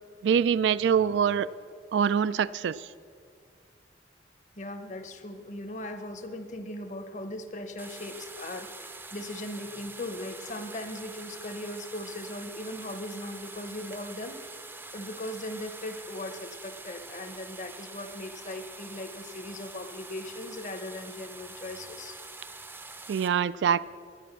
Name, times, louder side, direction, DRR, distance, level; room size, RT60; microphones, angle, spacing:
voice 1, 0.2-1.5 1.9-2.9 23.1-23.8, right 7 dB, 80° right, 17 dB, 0.3 m, -24 dB
voice 2, 4.6-14.4 14.9-22.2, left 1 dB, 40° left, 7 dB, 0.9 m, -39 dB
sound 1, 7.8-23.3, right 3 dB, 10° right, 0.5 m, -45 dB
11.0 x 9.9 x 6.8 m, 2.2 s
head